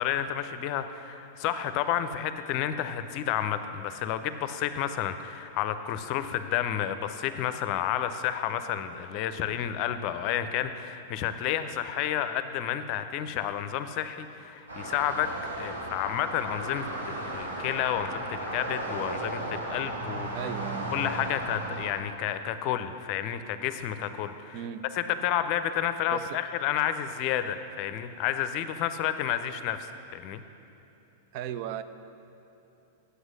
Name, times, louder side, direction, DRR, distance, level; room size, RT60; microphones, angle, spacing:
voice 1, 0.0-15.3 15.6-20.4 20.9-24.6 24.9-30.4, left 10 dB, 45° left, 11 dB, 0.5 m, -30 dB
sound 1, 14.7-21.9, right 1 dB, 80° right, 1.8 m, -35 dB
voice 2, 20.3-20.9 24.5-24.8 26.1-26.4 31.3-31.8, right 10 dB, 50° right, 12 dB, 0.4 m, -36 dB
8.0 x 8.0 x 6.3 m, 2.9 s
figure-of-eight pair, 100°, 0 cm